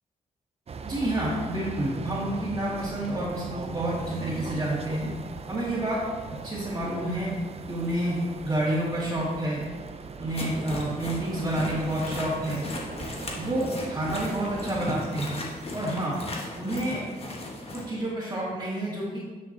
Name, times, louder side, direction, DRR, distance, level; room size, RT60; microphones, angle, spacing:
sound 1, 0.7-14.9, right 4 dB, 40° right, 0.5 m, -39 dB
voice 1, 0.8-5.1 5.5-6.0 6.4-7.3 7.7-9.6 10.2-12.7 13.4-15.4 15.7-16.2 16.6-17.0 17.7-19.2, right 1 dB, 25° right, -10 dB, 2.1 m, -29 dB
sound 2, 10.3-17.9, left 1 dB, 40° left, 1.3 m, -36 dB
9.6 x 6.4 x 2.8 m, 1.4 s
cardioid pair, 95°, 15 cm